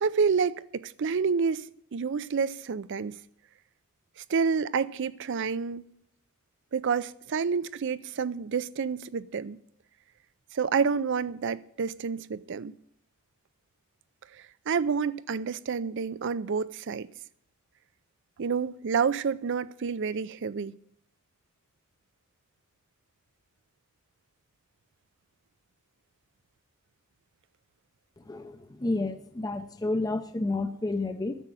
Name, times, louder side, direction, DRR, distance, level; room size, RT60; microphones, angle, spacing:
voice 1, 0.0-1.7 1.9-3.1 4.3-5.8 6.7-9.6 10.5-12.7 14.7-17.1 18.4-20.7, right 5 dB, 55° right, 0.5 m, -28 dB
voice 2, 28.3-31.4, left 2 dB, 15° left, 0.5 m, -30 dB
9.9 x 7.4 x 9.0 m
head